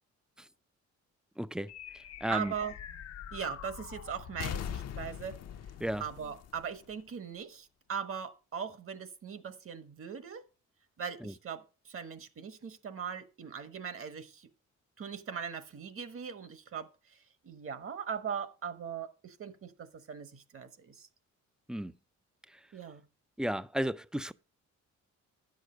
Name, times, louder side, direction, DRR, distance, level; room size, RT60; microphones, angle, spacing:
voice 1, 1.4-1.7 2.2-2.5 5.8-6.0 11.2-11.3 21.7-21.9 23.4-24.3, right 1 dB, ahead, 0.4 m, -33 dB
sound 1, 1.7-7.4, left 9 dB, 55° left, 0.7 m, -43 dB
voice 2, 2.3-2.7 3.3-5.4 6.0-10.4 11.0-14.5 15.0-17.2 17.4-21.1 22.7-23.0, right 7 dB, 45° right, 1.2 m, -40 dB
10.0 x 6.6 x 5.0 m
cardioid pair, 90°, 30 cm